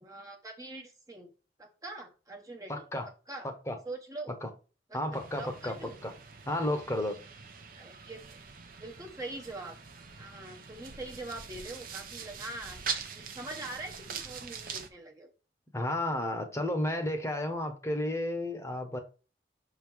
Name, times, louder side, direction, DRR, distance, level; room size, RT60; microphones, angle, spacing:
voice 1, 0.0-1.3 1.6-2.8 3.3-3.5 3.8-4.3 4.9-5.0 5.4-6.0 7.7-8.4 8.8-9.8 10.2-12.8 13.1-15.3, right 2 dB, 20° right, 0.9 m, -43 dB
voice 2, 2.7-3.1 3.4-3.8 4.4-4.5 4.9-5.8 6.0-6.1 6.5-7.2 15.7-19.0, left 1 dB, 15° left, 1.0 m, -32 dB
sound 1, 5.1-14.9, right 6 dB, 50° right, 0.9 m, -43 dB
6.5 x 3.9 x 4.6 m
head